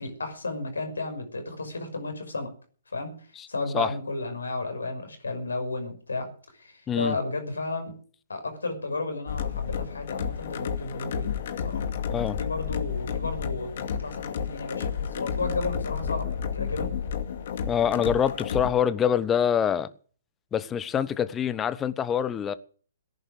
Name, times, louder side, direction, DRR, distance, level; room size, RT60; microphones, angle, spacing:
voice 1, 0.0-2.5 2.9-3.1 3.5-6.3 6.6-7.9 8.3-11.8 12.4-16.9 18.3-18.7, left 3 dB, 80° left, 6.0 m, -33 dB
sound 1, 9.3-18.7, left 7 dB, 55° left, 2.4 m, -31 dB
voice 2, 17.7-19.9 20.5-22.5, left 8 dB, 20° left, 1.1 m, -25 dB
18.0 x 10.5 x 6.6 m
figure-of-eight pair, 125°, 0 cm